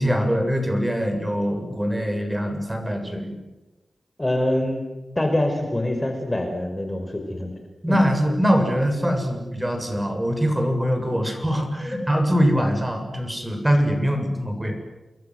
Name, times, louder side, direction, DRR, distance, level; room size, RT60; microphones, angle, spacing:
voice 1, 0.0-3.5 7.8-14.8, equal, 10° right, 5 dB, 7.3 m, -23 dB
voice 2, 4.2-4.9 5.2-7.5 7.9-8.0 11.1-11.3 11.8-12.1 13.9-14.0, left 1 dB, 20° left, 4 dB, 5.2 m, -25 dB
29.5 x 22.0 x 8.0 m, 1.1 s
cardioid pair, 65°, 0 cm